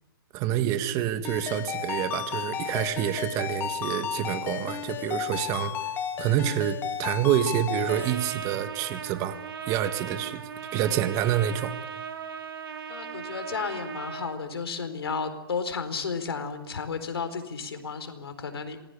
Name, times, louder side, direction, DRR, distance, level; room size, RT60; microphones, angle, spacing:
voice 1, 0.3-5.9 6.2-9.4 9.7-11.7, right 11 dB, 25° right, 10 dB, 1.7 m, -27 dB
Ringtone, 1.2-8.1, left 9 dB, 15° left, 1.4 m, -33 dB
Trumpet, 7.9-14.4, right 6 dB, 70° right, 3.1 m, -38 dB
voice 2, 12.9-18.8, left 5 dB, 85° left, 8 dB, 4.3 m, -33 dB
27.0 x 20.5 x 7.0 m, 1.0 s
hypercardioid pair, 155°, 13 cm